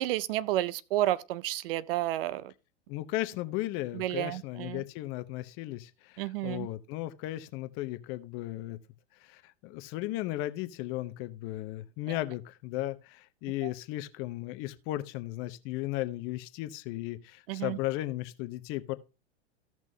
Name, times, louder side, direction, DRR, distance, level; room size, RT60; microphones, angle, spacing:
voice 1, 0.0-2.5 4.0-4.8 6.2-6.7 17.5-17.8, right 14 dB, 55° right, 0.5 m, -31 dB
voice 2, 2.9-8.8 9.2-18.9, left 16 dB, 40° left, 0.8 m, -36 dB
15.5 x 6.0 x 2.7 m
hypercardioid pair, 105°, 35 cm